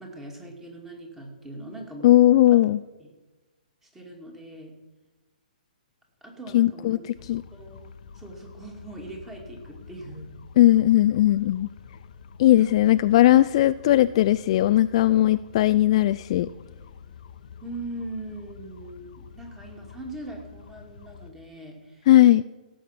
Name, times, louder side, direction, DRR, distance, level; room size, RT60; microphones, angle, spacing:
voice 1, 0.0-2.2 2.5-2.6 3.0-3.1 3.8-4.7 6.2-7.8 8.1-10.3 12.6-13.0 17.6-22.1, right 2 dB, 5° right, 1 dB, 2.4 m, -41 dB
voice 2, 2.0-2.8 6.5-7.4 10.6-11.7 12.4-16.5 22.1-22.4, left 14 dB, 40° left, 13 dB, 0.3 m, -18 dB
sound 1, 7.1-21.3, left 7 dB, 60° left, 0.9 m, -47 dB
16.5 x 7.8 x 5.8 m, 1.2 s
hypercardioid pair, 150°, 5 cm